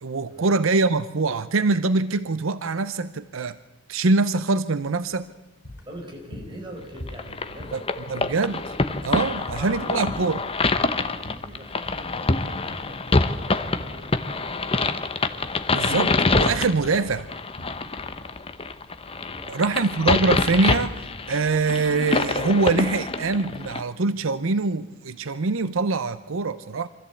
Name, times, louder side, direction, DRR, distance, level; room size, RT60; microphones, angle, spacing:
voice 1, 0.0-3.6 3.9-5.3 7.7-7.8 8.1-8.6 9.0-10.4 15.7-17.3 19.5-26.9, right 3 dB, 90° right, 14 dB, 0.7 m, -24 dB
sound 1, 4.8-20.4, left 1 dB, 60° left, 5.0 m, -44 dB
voice 2, 5.8-7.8 9.3-10.3 11.0-15.0 19.3-19.7, right 1 dB, 25° right, 0 dB, 5.0 m, -43 dB
sound 2, 7.1-23.8, left 3 dB, 30° left, 0.9 m, -26 dB
25.0 x 14.0 x 8.2 m, 1.1 s
head